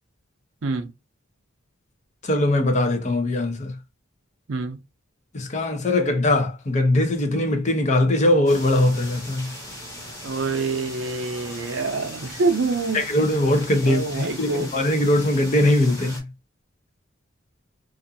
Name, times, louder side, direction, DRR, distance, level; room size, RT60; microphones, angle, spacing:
voice 1, 2.2-3.8 5.3-9.5 12.9-16.3, left 1 dB, 35° left, 0.6 m, -21 dB
sound 1, 8.5-16.2, left 1 dB, 15° left, 1.2 m, -39 dB
voice 2, 10.2-13.0 13.9-14.7, right 3 dB, 70° right, 0.5 m, -26 dB
2.5 x 2.4 x 2.6 m
head